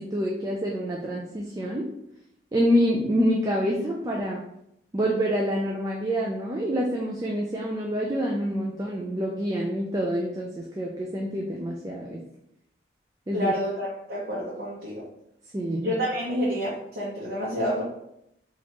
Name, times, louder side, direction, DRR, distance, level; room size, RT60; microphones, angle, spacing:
voice 1, 0.0-1.9 2.5-4.4 4.9-12.2 13.3-13.5 15.5-15.9, equal, 20° right, -2 dB, 0.3 m, -27 dB
voice 2, 13.3-15.0 15.8-17.8, equal, 65° right, -8 dB, 0.9 m, -28 dB
4.2 x 2.5 x 2.9 m, 0.78 s
head